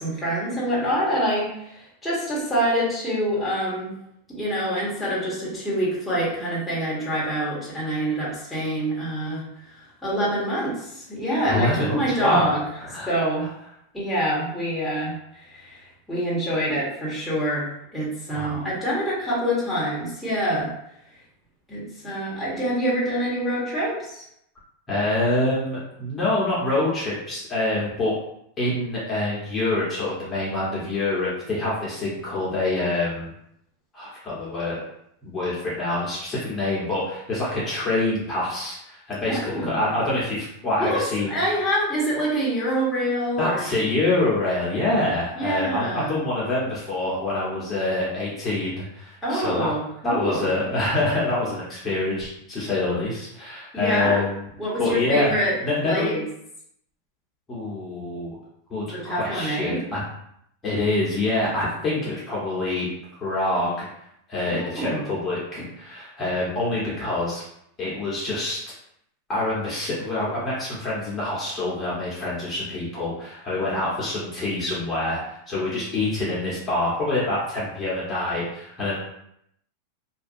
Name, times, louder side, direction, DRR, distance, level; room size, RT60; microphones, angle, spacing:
voice 1, 0.0-3.9 4.3-9.4 9.7-12.6 13.1-13.5 13.9-15.8 16.1-20.7 21.7-24.2 39.2-39.8 40.8-43.6 45.4-46.2 49.2-50.5 53.7-54.2 54.6-55.6 55.8-56.2 58.9-59.9 64.4-65.0, equal, 5° left, -8 dB, 1.1 m, -26 dB
voice 2, 11.4-12.5 12.8-13.1 18.3-18.7 24.9-28.2 28.6-33.3 33.9-34.8 35.2-41.4 43.4-49.7 50.0-54.5 54.8-55.3 55.6-56.1 57.5-58.4 58.7-60.0 60.6-62.9 63.2-63.9 64.3-67.4 67.8-68.6 69.3-75.2 75.5-79.0, left 2 dB, 25° left, -7 dB, 1.0 m, -26 dB
2.6 x 2.3 x 2.6 m, 0.75 s
hypercardioid pair, 120°, 0 cm